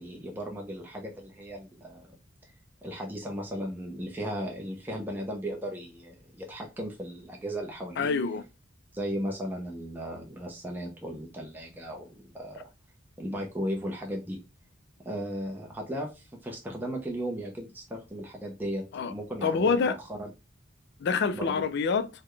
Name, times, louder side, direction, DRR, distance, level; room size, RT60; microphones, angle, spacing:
voice 1, 0.0-2.1 2.8-8.1 8.9-12.7 13.2-14.4 15.0-20.3 21.3-21.5, equal, 10° right, 0.6 m, -36 dB
voice 2, 8.0-8.4 18.9-19.1 19.4-20.0 21.0-22.1, left 5 dB, 60° left, 0.4 m, -26 dB
3.9 x 2.1 x 3.1 m
head